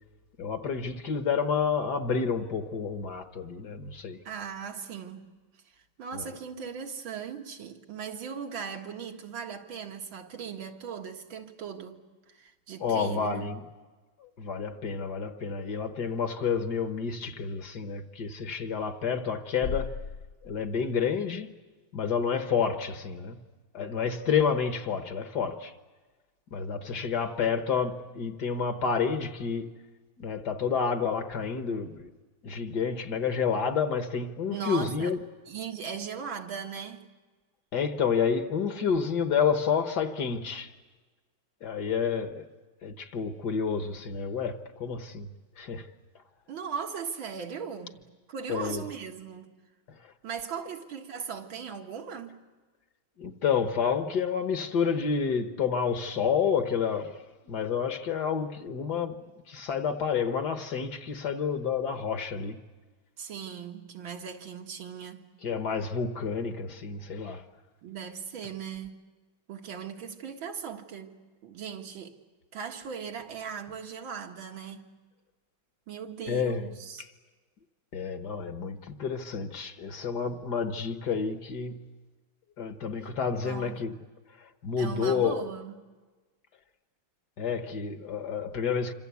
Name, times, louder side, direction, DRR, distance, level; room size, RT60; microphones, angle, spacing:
voice 1, 0.4-4.2 6.1-6.3 12.8-13.6 14.2-20.0 20.4-21.5 21.9-23.4 23.7-25.7 26.5-29.7 30.2-32.1 32.4-35.2 37.7-40.7 41.6-42.5 42.8-45.3 45.6-45.9 48.5-48.9 49.9-50.1 53.2-62.6 65.4-67.4 76.3-76.7 77.0-77.1 77.9-81.9 82.6-84.0 84.4-85.4 87.4-88.9, left 6 dB, 60° left, 1.8 m, -29 dB
voice 2, 4.2-5.3 6.0-12.0 12.3-13.5 34.5-35.1 35.5-37.1 46.5-48.0 48.3-49.5 50.2-52.5 63.2-65.3 67.8-69.0 69.5-72.2 72.5-74.9 75.9-77.1 83.4-83.8 84.8-85.7, right 6 dB, 75° right, 2.5 m, -38 dB
26.5 x 26.0 x 8.4 m
omnidirectional pair, 2.2 m